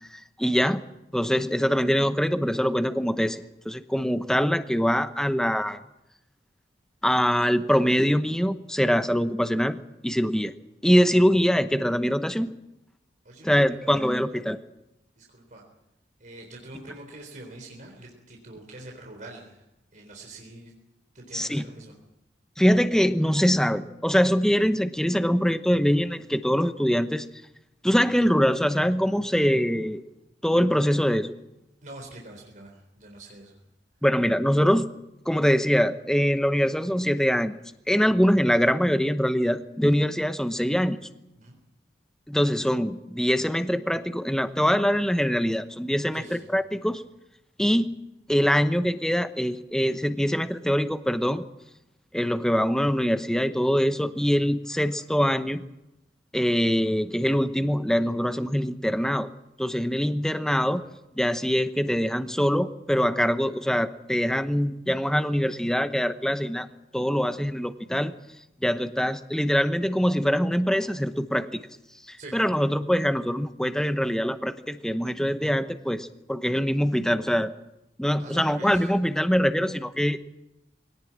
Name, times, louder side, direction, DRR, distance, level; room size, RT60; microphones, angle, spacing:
voice 1, 0.1-0.8 1.1-5.8 7.0-9.8 10.0-10.5 10.8-12.5 13.4-14.6 21.3-21.6 22.6-27.3 27.8-30.0 30.4-31.3 34.0-34.9 35.3-37.5 37.9-41.0 42.3-47.0 47.6-48.0 48.3-51.4 52.1-55.6 56.3-59.3 59.6-60.8 61.2-66.7 66.9-68.1 68.6-71.6 72.1-77.5 78.0-80.2, equal, 5° left, 9 dB, 0.9 m, -23 dB
voice 2, 13.2-14.3 15.2-15.6 16.2-19.6 19.9-20.7 21.1-22.0 31.8-33.6 41.4-41.6 46.1-46.5 60.5-60.7 72.2-72.3 78.2-78.9, right 2 dB, 45° right, 1 dB, 3.8 m, -45 dB
21.5 x 18.0 x 8.7 m, 0.89 s
head